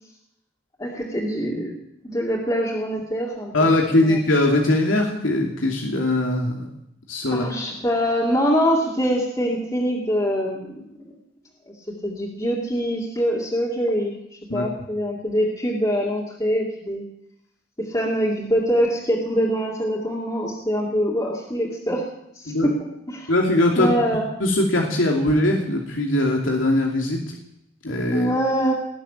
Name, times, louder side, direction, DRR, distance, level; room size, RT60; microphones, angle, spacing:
voice 1, 0.8-1.7 2.0-3.7 4.1-4.2 7.3-10.8 12.0-14.1 14.5-17.0 17.9-22.0 22.3-22.5 23.1-23.3 23.8-24.3 28.1-28.7, equal, 20° left, -4 dB, 2.5 m, -24 dB
voice 2, 3.5-6.7 7.1-7.5 14.5-14.6 22.5-22.7 23.3-23.9 24.4-27.3 27.8-28.3, left 1 dB, 85° left, 0 dB, 2.7 m, -21 dB
19.5 x 7.3 x 10.0 m, 0.79 s
head